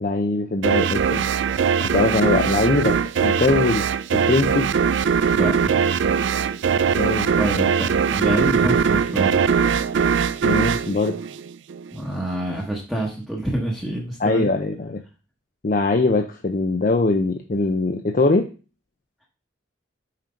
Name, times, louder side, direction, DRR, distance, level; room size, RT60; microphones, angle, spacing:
voice 1, 0.0-1.2 1.8-3.8 4.1-4.6 7.0-7.7 10.4-11.2 14.2-15.0 15.6-18.5, left 3 dB, 45° left, 4 dB, 0.6 m, -22 dB
sound 1, 0.6-11.9, right 6 dB, 70° right, 0.3 m, -21 dB
voice 2, 5.3-5.9 7.4-9.4 11.9-14.5, right 1 dB, ahead, -3 dB, 1.1 m, -27 dB
5.8 x 4.4 x 5.1 m, 0.34 s
head